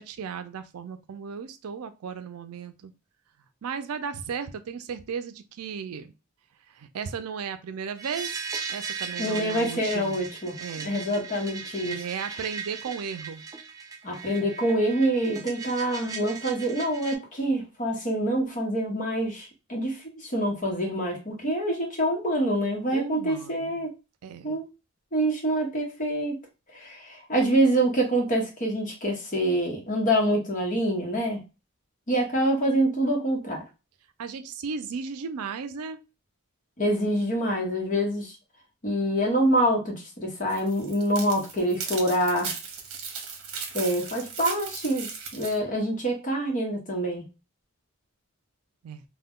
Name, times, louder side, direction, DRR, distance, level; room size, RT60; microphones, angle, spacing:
voice 1, 0.0-2.9 3.6-6.1 6.7-8.4 8.7-10.3 10.6-10.9 11.8-13.4 22.9-23.8 24.2-24.6 34.2-36.0 48.8-49.0, right 6 dB, 90° right, 10 dB, 0.4 m, -35 dB
sound 1, 8.0-17.2, right 5 dB, 15° right, 0.3 m, -38 dB
voice 2, 9.2-10.6 10.8-12.0 14.0-23.9 24.4-24.7 25.1-26.4 26.7-31.4 32.1-33.6 36.8-38.3 38.8-42.5 43.7-47.2, right 1 dB, 35° left, 0 dB, 0.9 m, -26 dB
sound 2, 40.5-45.6, right 5 dB, 70° right, 0.8 m, -37 dB
2.2 x 2.1 x 3.6 m, 0.28 s
head